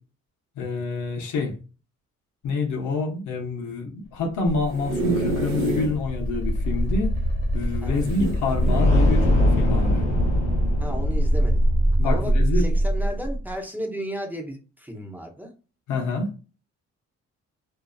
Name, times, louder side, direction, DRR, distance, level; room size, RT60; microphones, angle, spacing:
voice 1, 0.6-1.6 2.4-7.2 7.5-9.3 9.6-10.0 12.0-12.7 15.9-16.3, left 3 dB, 80° left, 0.8 m, -27 dB
sound 1, 4.5-6.0 6.5-6.6 6.7-6.8 8.0-8.9 9.6-9.8, right 1 dB, 45° right, 1.1 m, -28 dB
sound 2, 5.2-13.4, equal, 20° left, 1.2 m, -21 dB
voice 2, 7.8-8.4 10.8-11.6 12.0-15.5, equal, 5° right, 0.9 m, -34 dB
2.7 x 2.4 x 2.3 m
cardioid pair, 90°, 30 cm